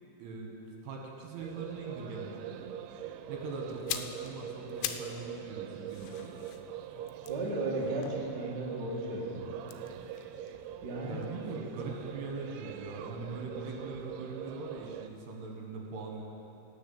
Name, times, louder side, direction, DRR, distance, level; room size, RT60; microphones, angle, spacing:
voice 1, 0.2-0.5 0.8-2.8 3.3-6.4 11.0-16.2, right 3 dB, 70° right, 0 dB, 3.2 m, -41 dB
sound 1, 1.4-15.1, right 10 dB, 85° right, 2.9 m, -43 dB
sound 2, 3.7-5.2 5.5-8.8 9.6-11.6 11.9-12.1, left 11 dB, 85° left, 3.0 m, -42 dB
voice 2, 7.3-9.4 10.8-11.2, right 2 dB, 50° right, -4 dB, 1.2 m, -35 dB
17.5 x 6.7 x 7.0 m, 2.8 s
omnidirectional pair, 5.3 m